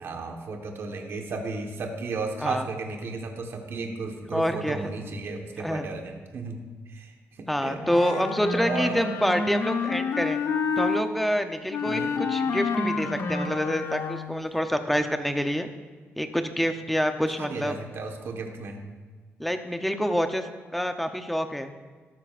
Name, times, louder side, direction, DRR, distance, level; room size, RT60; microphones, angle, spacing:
voice 1, 0.0-7.1 7.4-8.1 8.5-9.0 11.8-12.1 17.4-18.9, right 3 dB, 55° right, 3 dB, 1.3 m, -34 dB
voice 2, 4.3-4.9 5.6-5.8 7.5-10.4 10.8-15.7 16.2-17.8 19.4-21.7, equal, ahead, 7 dB, 0.7 m, -27 dB
Wind instrument woodwind instrument, 7.8-11.0 11.7-14.5, left 4 dB, 70° left, 0.9 m, -29 dB
13.5 x 12.0 x 2.5 m, 1.4 s
wide cardioid pair, 145°, 5 cm